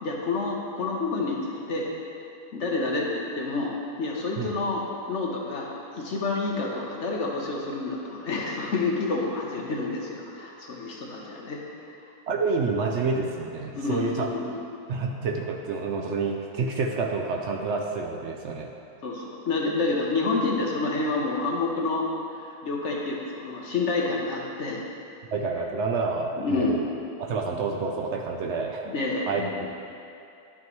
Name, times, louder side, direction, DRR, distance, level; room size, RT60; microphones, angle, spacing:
voice 1, 0.0-1.9 2.5-11.6 13.7-14.6 19.0-24.8 26.4-26.8 28.9-29.6, left 3 dB, 55° left, -2 dB, 1.0 m, -28 dB
voice 2, 12.3-14.3 14.9-18.7 25.3-26.8 27.2-28.9 29.3-29.7, right 4 dB, 70° right, 2 dB, 0.7 m, -28 dB
11.0 x 5.8 x 3.1 m, 2.6 s
omnidirectional pair, 1.6 m